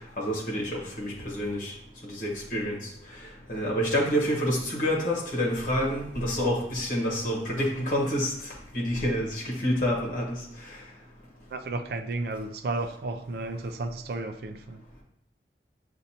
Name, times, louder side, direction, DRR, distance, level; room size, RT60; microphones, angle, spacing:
voice 1, 0.2-1.7 2.0-2.8 3.5-8.3 8.7-10.4, equal, 45° left, 1.3 m, -28 dB
voice 2, 11.5-14.8, right 2 dB, 60° right, 0.4 m, -33 dB
7.1 x 2.6 x 2.8 m
head